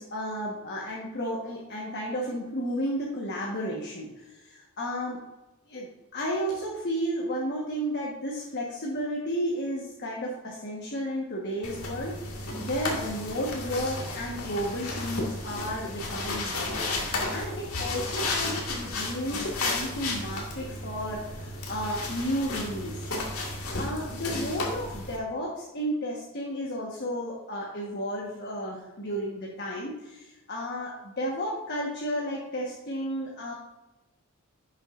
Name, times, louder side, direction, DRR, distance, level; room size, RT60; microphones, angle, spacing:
voice 1, 0.0-5.2 5.7-16.9 17.3-23.1 23.3-33.5, equal, 50° left, -3 dB, 1.3 m, -33 dB
sound 1, 11.6-25.2, left 2 dB, 90° left, 1.9 m, -33 dB
11.0 x 7.2 x 2.6 m, 1.1 s
head